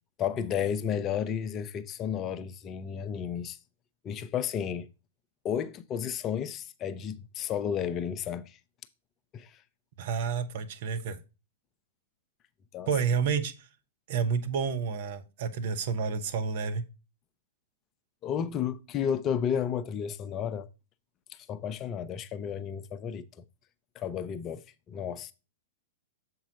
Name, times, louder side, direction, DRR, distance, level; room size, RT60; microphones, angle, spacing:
voice 1, 0.2-3.6 4.0-4.9 5.4-8.6 9.3-9.6 12.7-12.9 18.2-20.7 21.3-23.4 23.9-25.3, left 8 dB, 30° left, 0.6 m, -32 dB
voice 2, 10.0-11.2 12.9-13.5 14.1-16.8, right 6 dB, 55° right, 1.0 m, -29 dB
7.3 x 4.7 x 3.9 m
figure-of-eight pair, 105°, 0 cm